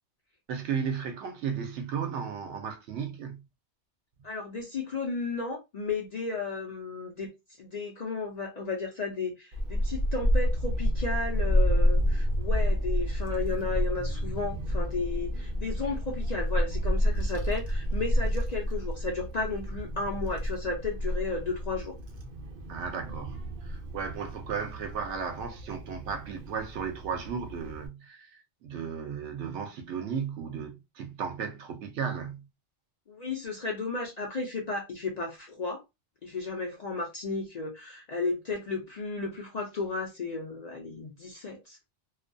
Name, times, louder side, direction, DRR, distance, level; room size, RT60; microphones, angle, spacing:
voice 1, 0.5-3.4 22.7-28.3 28.6-32.5, right 6 dB, 80° right, 0.9 m, -35 dB
voice 2, 4.2-7.3 7.6-21.9 33.1-35.8 36.2-41.8, left 3 dB, 50° left, 0.5 m, -34 dB
Child speech kid speaking / Wind, 9.5-27.9, equal, 50° right, 0.6 m, -29 dB
2.3 x 2.2 x 2.5 m
omnidirectional pair, 1.2 m